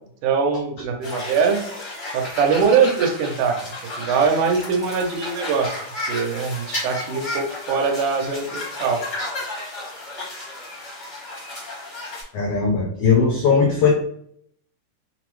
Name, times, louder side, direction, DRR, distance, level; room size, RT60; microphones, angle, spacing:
voice 1, 0.2-1.6 2.1-3.6 4.0-5.8 6.1-9.0, right 5 dB, 85° right, 4 dB, 2.1 m, -22 dB
sound 1, 1.0-12.2, left 1 dB, 65° left, 0.7 m, -33 dB
voice 2, 12.3-13.9, left 5 dB, 90° left, -1 dB, 1.4 m, -18 dB
5.7 x 2.0 x 3.0 m, 0.67 s
omnidirectional pair, 3.6 m